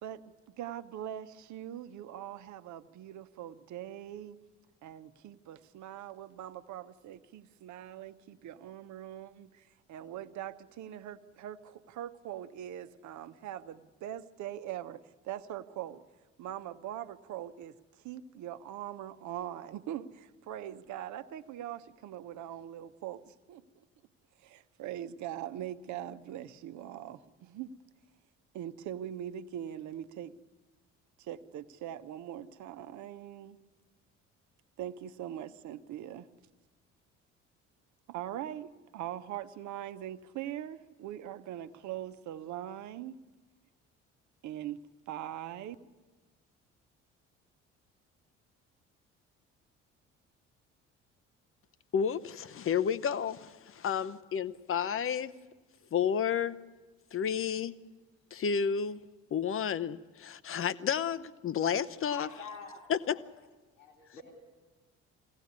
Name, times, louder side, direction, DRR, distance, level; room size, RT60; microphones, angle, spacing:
voice 1, 0.0-4.4 4.8-16.0 16.4-23.8 24.4-27.7 28.5-30.3 31.2-33.6 34.8-36.3 38.1-43.1 44.4-45.8, right 11 dB, 50° right, 12 dB, 1.0 m, -42 dB
voice 2, 51.9-55.3 55.9-56.6 57.1-57.7 58.3-59.0 59.3-62.3 62.9-63.1, left 7 dB, 35° left, 16 dB, 0.9 m, -31 dB
voice 3, 62.0-63.2 63.7-64.3, left 5 dB, 80° left, 0 dB, 2.7 m, -47 dB
22.5 x 17.0 x 9.6 m, 1.3 s
figure-of-eight pair, 50°, 37 cm